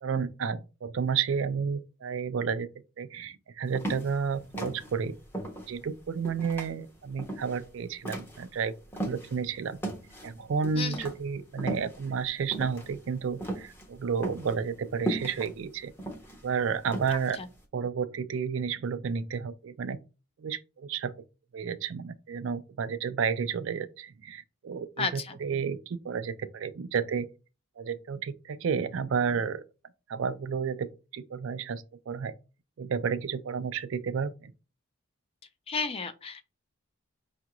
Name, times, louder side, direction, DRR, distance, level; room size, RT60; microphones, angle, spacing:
voice 1, 0.0-2.7 3.0-5.2 5.7-8.7 9.1-9.8 10.2-15.9 16.4-17.4 17.7-20.0 20.4-21.1 21.5-27.3 27.8-29.6 30.1-32.3 32.8-34.5, right 6 dB, 60° right, 0.4 m, -31 dB
sound 1, 3.7-9.4 9.8-17.6, right 1 dB, 10° left, 0.7 m, -37 dB
voice 2, 10.7-11.1 17.1-17.5 25.0-25.4 35.7-36.4, left 4 dB, 25° left, 0.3 m, -33 dB
5.4 x 2.4 x 2.9 m
head